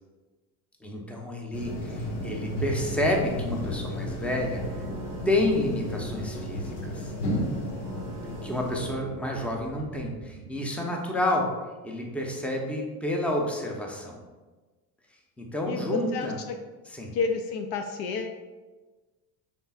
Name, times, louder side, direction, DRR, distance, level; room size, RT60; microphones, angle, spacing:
voice 1, 0.8-4.6 5.3-7.1 8.4-11.5 11.8-14.2 15.4-16.4 16.9-17.2, left 1 dB, 5° left, 0 dB, 0.7 m, -29 dB
sound 1, 1.5-9.0, left 1 dB, 75° left, 1.3 m, -33 dB
sound 2, 2.8-11.0, right 6 dB, 40° right, 0.6 m, -45 dB
voice 2, 15.7-16.3 17.1-18.3, left 4 dB, 60° left, 6 dB, 0.5 m, -29 dB
5.4 x 3.6 x 2.4 m, 1.2 s
supercardioid pair, 90°, 46 cm